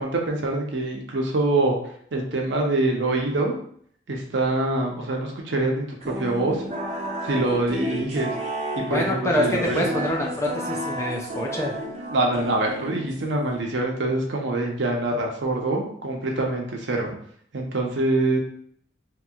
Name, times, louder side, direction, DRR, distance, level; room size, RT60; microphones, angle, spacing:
voice 1, 0.0-1.8 2.1-3.6 4.1-5.8 6.2-6.6 7.2-8.3 8.8-9.8 12.1-17.1 17.5-18.4, right 2 dB, 70° right, 0 dB, 0.7 m, -25 dB
sound 1, 6.0-13.4, equal, 35° right, 0.6 m, -32 dB
voice 2, 8.9-11.7, equal, 15° left, -1 dB, 0.5 m, -25 dB
2.9 x 2.8 x 2.3 m, 0.62 s
head